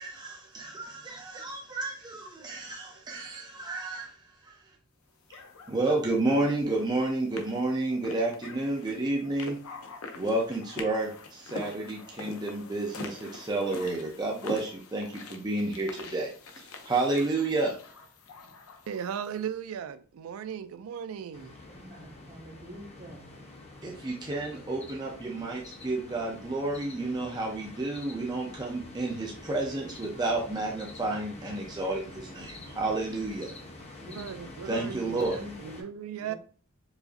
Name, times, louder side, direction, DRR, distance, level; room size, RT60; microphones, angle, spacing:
voice 1, 0.0-4.8 5.7-9.6 10.1-17.8 23.8-33.5 34.7-35.4, right 2 dB, 20° right, 0.6 m, -31 dB
sound 1, 5.3-19.4, left 3 dB, 85° left, 0.6 m, -45 dB
voice 2, 18.9-21.5 34.1-36.3, right 8 dB, 70° right, 0.3 m, -37 dB
sound 2, 21.3-35.8, left 2 dB, 30° left, 0.7 m, -47 dB
voice 3, 21.7-23.3 34.0-34.4 35.3-35.5 36.2-36.3, equal, 40° right, 1.0 m, -46 dB
4.9 x 2.6 x 2.5 m
head